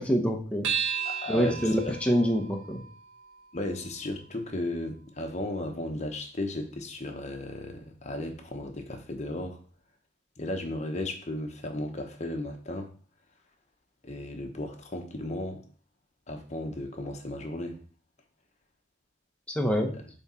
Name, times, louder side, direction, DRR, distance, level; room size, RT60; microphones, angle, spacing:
voice 1, 0.0-0.9 1.3-2.8 19.5-19.9, equal, 5° left, 0.9 m, -26 dB
sound 1, 0.6-5.4, right 7 dB, 75° right, 1.5 m, -36 dB
voice 2, 1.0-1.9 3.5-9.6 10.4-12.9 14.0-15.6 16.3-17.8 19.9-20.0, left 1 dB, 35° left, 0.9 m, -35 dB
7.6 x 3.6 x 4.3 m
head